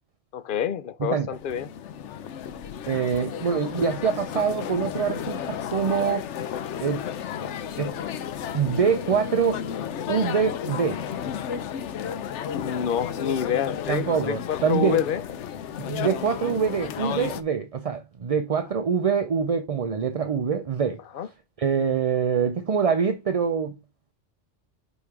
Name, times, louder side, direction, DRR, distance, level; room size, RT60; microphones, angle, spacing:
voice 1, 0.3-1.7 12.5-15.2 21.1-21.3, left 9 dB, 60° left, 0.6 m, -27 dB
sound 1, 1.3-17.4, left 8 dB, 80° left, 1.0 m, -33 dB
voice 2, 2.9-6.3 6.8-7.0 7.8-7.9 8.5-9.6 10.1-11.0 13.9-15.0 15.9-21.0 21.6-23.7, right 6 dB, 45° right, 0.5 m, -24 dB
5.5 x 4.4 x 4.7 m
omnidirectional pair, 1.2 m